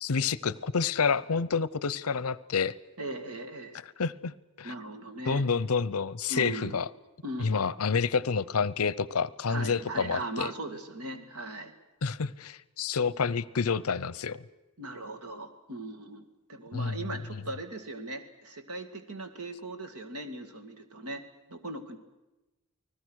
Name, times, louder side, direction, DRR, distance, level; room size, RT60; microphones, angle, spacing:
voice 1, 0.0-2.7 4.0-4.7 5.3-6.9 7.4-10.5 12.0-14.4 16.7-17.2, left 5 dB, 70° left, 20 dB, 0.7 m, -29 dB
voice 2, 3.0-3.8 4.6-5.4 6.3-6.8 7.2-7.7 9.5-11.7 14.8-21.2 21.5-22.0, right 2 dB, 80° right, 7 dB, 2.3 m, -39 dB
29.5 x 20.0 x 6.4 m, 1.0 s
head